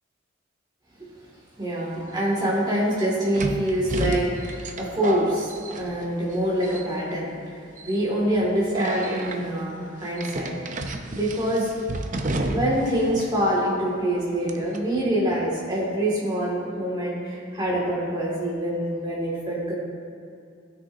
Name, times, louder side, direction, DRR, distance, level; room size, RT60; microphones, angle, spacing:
voice 1, 1.6-5.5 5.8-7.3 7.8-11.7 12.5-19.7, right 1 dB, 20° right, -5 dB, 2.0 m, -25 dB
sound 1, 2.0-2.1 3.3-6.3 6.6-7.1 7.8-8.0 8.7-9.4 10.2-12.9 13.2-13.3 14.5-14.8, right 2 dB, 40° right, 0.6 m, -30 dB
15.5 x 6.5 x 2.6 m, 2.4 s
head